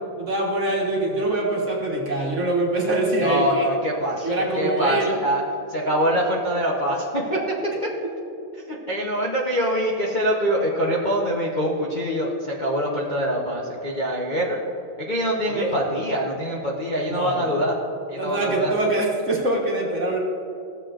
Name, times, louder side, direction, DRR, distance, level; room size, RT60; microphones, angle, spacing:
voice 1, 0.2-3.7 4.2-5.1 15.5-15.7 17.1-17.5 18.2-20.2, right 2 dB, 40° right, -2 dB, 1.3 m, -24 dB
voice 2, 3.2-4.3 4.6-5.4 5.7-7.5 8.7-14.6 15.0-17.8 18.1-18.7, equal, 90° left, -6 dB, 0.4 m, -24 dB
15.5 x 7.3 x 2.5 m, 2.8 s
omnidirectional pair, 2.3 m